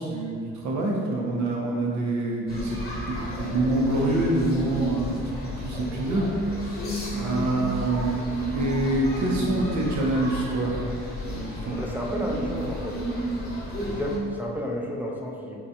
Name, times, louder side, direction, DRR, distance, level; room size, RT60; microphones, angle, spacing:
voice 1, 0.0-2.8 3.1-5.1 5.4-6.2 7.1-8.2 8.5-10.8 11.1-11.8, right 2 dB, 70° right, -2 dB, 0.7 m, -26 dB
sound 1, 2.5-14.2, equal, 30° left, 0.9 m, -32 dB
voice 2, 11.7-13.0 13.8-15.6, equal, 5° right, -2 dB, 0.3 m, -31 dB
3.9 x 2.3 x 2.7 m, 2.4 s
cardioid pair, 90°, 30 cm